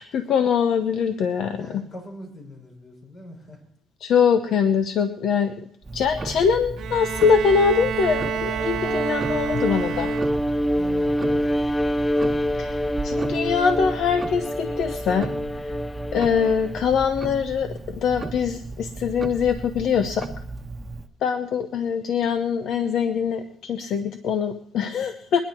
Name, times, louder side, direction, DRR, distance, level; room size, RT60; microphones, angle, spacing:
voice 1, 0.0-1.8 4.0-5.5 5.9-10.1 12.6-12.8 13.0-15.3 15.6-15.8 16.1-20.3 21.2-25.4, left 6 dB, 75° left, 9 dB, 0.8 m, -23 dB
voice 2, 1.6-3.6 10.7-11.5, left 1 dB, 45° left, 1 dB, 6.3 m, -41 dB
Tick-tock, 5.8-21.1, right 3 dB, 25° right, 1.1 m, -35 dB
Bowed string instrument, 6.8-10.7, right 7 dB, 70° right, 1.1 m, -29 dB
Bowed string instrument 2, 8.5-16.8, equal, 10° left, 0.5 m, -26 dB
22.0 x 10.0 x 4.5 m, 0.68 s
cardioid pair, 90°, 0 cm